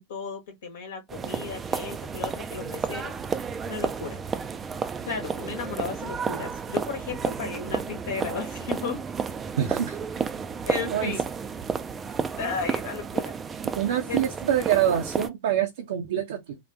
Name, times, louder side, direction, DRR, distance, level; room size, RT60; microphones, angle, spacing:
voice 1, 0.0-3.1 3.6-4.2 5.1-9.0 10.6-11.2 12.4-13.3 14.1-14.2, left 5 dB, 60° left, 1.0 m, -34 dB
sound 1, 1.1-15.3, right 6 dB, 20° right, 0.4 m, -32 dB
voice 2, 9.6-10.0 10.9-11.1 13.8-16.6, right 10 dB, 60° right, 0.6 m, -25 dB
3.9 x 2.4 x 3.3 m
figure-of-eight pair, 90°, 0 cm